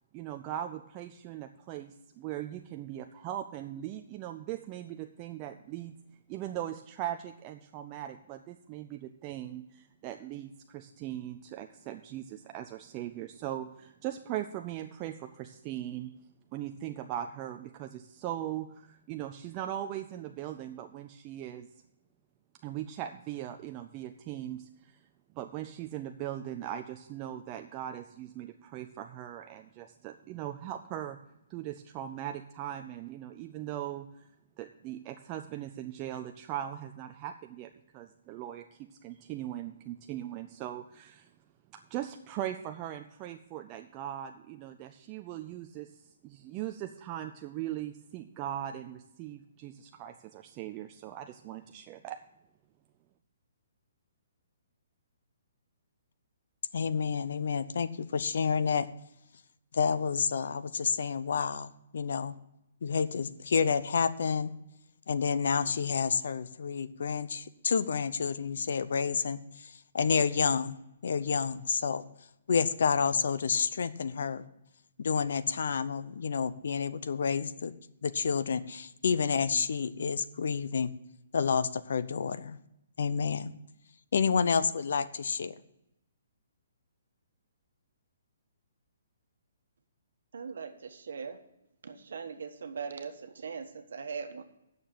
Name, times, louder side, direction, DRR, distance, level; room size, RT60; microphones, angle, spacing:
voice 1, 0.1-5.9 6.3-16.2 16.5-21.7 22.6-25.1 25.4-31.2 31.5-34.3 34.6-41.3 41.7-52.2, right 12 dB, 20° right, 6 dB, 0.3 m, -39 dB
voice 2, 56.7-58.9 59.7-62.3 62.8-64.5 65.1-69.4 69.9-70.8 71.0-72.0 72.5-74.4 75.0-77.7 78.0-80.9 81.3-82.6 83.0-83.5 84.1-85.5, left 6 dB, 60° left, 14 dB, 0.6 m, -29 dB
voice 3, 90.3-91.4 91.8-94.4, right 5 dB, 65° right, 8 dB, 1.3 m, -40 dB
9.4 x 6.6 x 7.4 m, 0.83 s
hypercardioid pair, 175°, 0 cm